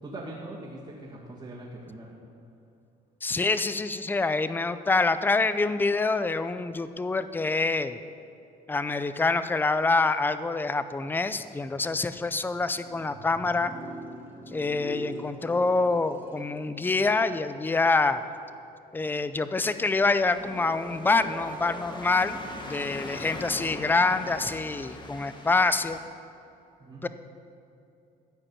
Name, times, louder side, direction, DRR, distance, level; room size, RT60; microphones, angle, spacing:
voice 1, 0.0-2.2 26.8-27.1, right 2 dB, 30° right, -7 dB, 2.2 m, -41 dB
voice 2, 3.2-8.0 8.7-13.7 14.5-18.2 18.9-26.0 27.0-27.1, left 3 dB, 10° left, 12 dB, 0.5 m, -26 dB
sound 1, 11.2-18.7 19.0-24.1, right 1 dB, 10° right, 1.7 m, -45 dB
sound 2, 19.7-26.0, left 2 dB, 25° left, 1.4 m, -42 dB
14.0 x 5.2 x 8.8 m, 2.7 s
cardioid pair, 110°, 17 cm